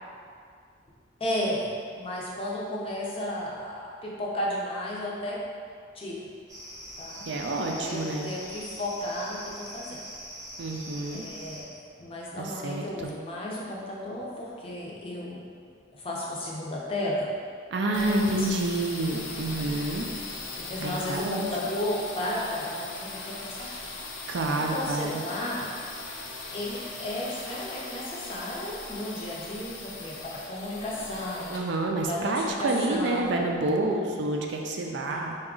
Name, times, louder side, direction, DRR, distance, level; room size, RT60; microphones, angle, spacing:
voice 1, 1.2-5.4 5.9-6.3 7.0-7.3 7.6-10.0 11.1-11.7 12.0-15.5 15.9-17.3 17.9-18.5 19.5-19.8 20.6-23.9 24.6-25.7 26.5-31.5 32.0-33.4 35.1-35.2, left 1 dB, 30° left, -4 dB, 0.5 m, -33 dB
sound 1, 6.5-11.6, equal, 15° right, 0.7 m, -42 dB
voice 2, 7.3-8.3 10.6-11.2 12.4-13.1 17.7-20.1 20.5-21.5 24.3-25.2 31.5-35.3, right 2 dB, 65° right, 1 dB, 0.4 m, -28 dB
sound 2, 17.9-33.6, left 3 dB, 90° left, 0.5 m, -40 dB
3.8 x 2.3 x 3.6 m, 2.2 s
head